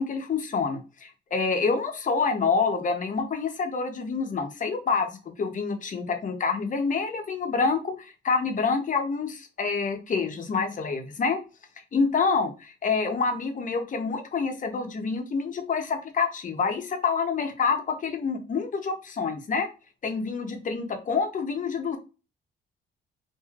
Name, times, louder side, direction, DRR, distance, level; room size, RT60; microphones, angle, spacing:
voice 1, 0.0-11.4 11.9-19.7 20.0-22.0, left 5 dB, 40° left, 5 dB, 0.8 m, -27 dB
3.0 x 2.7 x 2.4 m, 0.31 s
cardioid pair, 90°, 20 cm